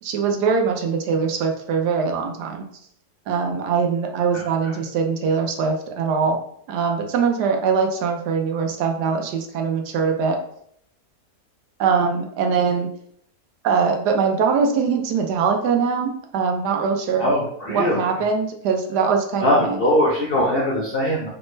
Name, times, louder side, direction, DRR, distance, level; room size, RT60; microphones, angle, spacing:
voice 1, 0.0-2.6 3.3-6.4 6.7-10.4 11.8-12.9 13.6-17.3 17.7-19.8, right 5 dB, 85° right, 4 dB, 1.2 m, -22 dB
voice 2, 17.2-18.1 19.4-21.3, left 1 dB, 65° left, -4 dB, 0.5 m, -21 dB
3.4 x 2.1 x 3.1 m, 0.67 s
omnidirectional pair, 1.7 m